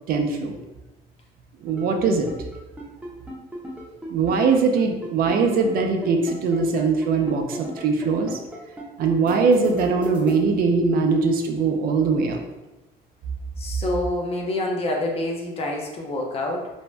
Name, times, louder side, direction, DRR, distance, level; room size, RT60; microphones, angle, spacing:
voice 1, 0.1-0.5 1.6-2.3 4.1-8.4 9.0-12.4, right 4 dB, 60° right, 3 dB, 0.4 m, -21 dB
sound 1, 1.7-10.3, equal, 5° right, 0.6 m, -35 dB
voice 2, 13.6-16.7, left 1 dB, 35° left, 0 dB, 0.6 m, -27 dB
2.6 x 2.1 x 3.2 m, 1.1 s
cardioid pair, 110°, 17 cm